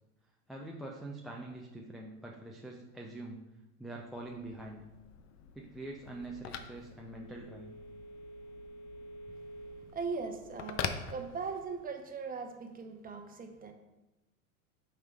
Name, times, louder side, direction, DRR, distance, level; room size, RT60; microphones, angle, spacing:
voice 1, 0.5-3.4 3.8-4.8 5.5-7.7, right 2 dB, ahead, 0 dB, 0.4 m, -44 dB
Telephone, 4.0-11.9, left 6 dB, 40° left, 0.6 m, -44 dB
voice 2, 9.9-10.8 11.1-13.7, right 5 dB, 20° right, 4 dB, 0.9 m, -39 dB
9.0 x 5.7 x 2.4 m, 1.0 s
hypercardioid pair, 100°, 43 cm